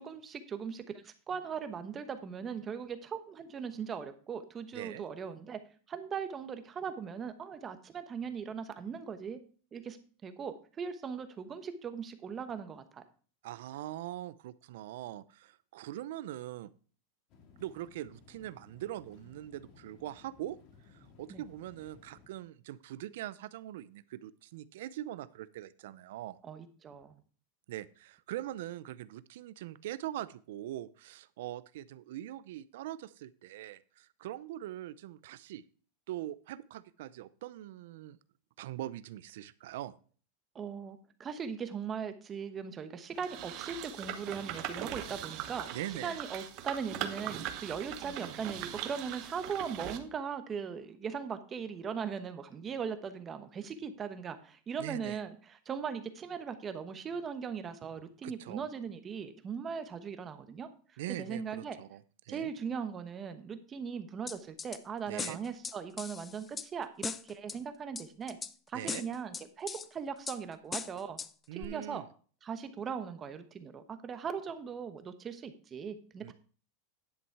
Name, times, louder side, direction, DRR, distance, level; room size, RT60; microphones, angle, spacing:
voice 1, 0.0-5.6 5.9-9.4 9.7-10.0 10.2-13.0 21.3-21.4 26.4-27.2 40.5-45.7 46.0-55.3 55.7-60.7 61.2-61.8 62.3-68.4 68.7-71.2 71.5-72.0 72.4-76.3, right 6 dB, 20° right, 9 dB, 1.1 m, -39 dB
voice 2, 4.7-5.0 13.4-16.7 17.6-20.6 20.9-26.4 27.7-35.6 36.1-38.2 38.6-39.9 45.7-46.2 54.8-55.2 58.2-58.6 61.0-62.5 65.1-65.4 68.7-69.1 71.5-72.1 76.2-76.3, right 13 dB, 70° right, 17 dB, 0.6 m, -42 dB
sound 1, 17.3-22.3, left 4 dB, 45° left, 2.1 m, -59 dB
sound 2, 43.2-50.0, right 11 dB, 45° right, 1.2 m, -40 dB
sound 3, 64.3-64.8 65.2-66.7 67.0-67.6 68.0-68.5 68.9-69.9 70.3-70.4 70.7-71.3 71.6-71.7, left 5 dB, 15° left, 0.4 m, -39 dB
10.5 x 6.2 x 4.7 m, 0.41 s
supercardioid pair, 150°, 0 cm